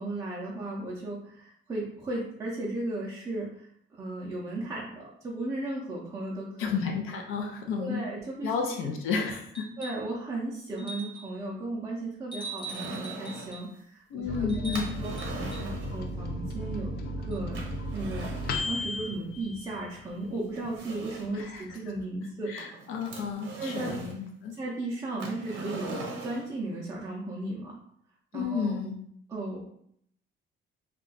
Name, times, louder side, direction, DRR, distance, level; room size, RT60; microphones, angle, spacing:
voice 1, 0.0-3.7 4.0-6.7 7.8-8.5 8.8-8.9 9.8-15.2 15.6-17.6 17.9-22.5 23.6-23.9 24.6-25.9 26.2-27.7 28.3-28.8 29.3-29.7, right 2 dB, 15° right, -6 dB, 0.4 m, -35 dB
voice 2, 6.6-8.0 8.4-9.7 14.1-15.0 21.3-21.6 22.5-24.6 28.3-29.0, left 5 dB, 90° left, 2 dB, 0.7 m, -32 dB
sound 1, 9.5-10.1 10.8-11.4 12.3-13.7 14.5-15.7 17.3-17.4, right 2 dB, 20° left, 0.8 m, -42 dB
sound 2, 12.7-13.6 14.7-16.1 17.5-18.9 19.9-20.0 20.5-21.4 22.6-24.2 25.2-26.5, right 2 dB, 65° right, 0.7 m, -40 dB
Microwave oven, 14.2-20.3 20.7-20.8 21.1-21.7, left 1 dB, 50° left, 0.4 m, -35 dB
2.4 x 2.2 x 3.8 m, 0.68 s
cardioid pair, 165°, 21 cm